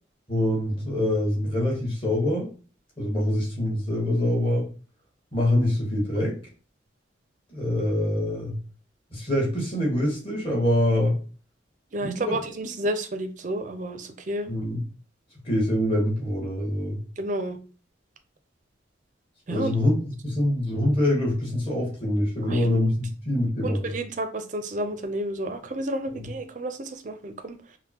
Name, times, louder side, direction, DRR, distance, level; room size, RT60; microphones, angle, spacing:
voice 1, 0.3-2.5 3.0-4.7 5.3-6.4 7.5-8.5 9.1-11.2 12.0-12.4 14.5-14.8 15.4-17.0 19.5-20.0 20.2-23.9, left 1 dB, 30° left, 1.4 m, -24 dB
voice 2, 11.9-14.5 17.2-17.6 19.5-19.8 22.4-22.7 23.6-27.8, right 1 dB, 40° right, 0.5 m, -31 dB
5.3 x 2.1 x 2.8 m
head